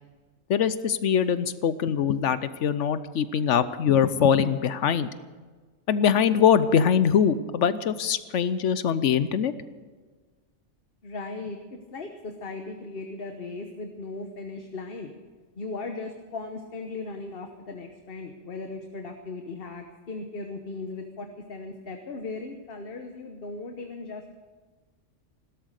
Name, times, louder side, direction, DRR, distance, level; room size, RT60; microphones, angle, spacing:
voice 1, 0.5-5.1 5.9-9.5, left 8 dB, 70° left, 14 dB, 1.0 m, -23 dB
voice 2, 11.0-11.6 11.9-15.1 15.6-24.4, left 3 dB, 50° left, 5 dB, 1.3 m, -37 dB
17.0 x 12.5 x 6.5 m, 1.4 s
omnidirectional pair, 1.3 m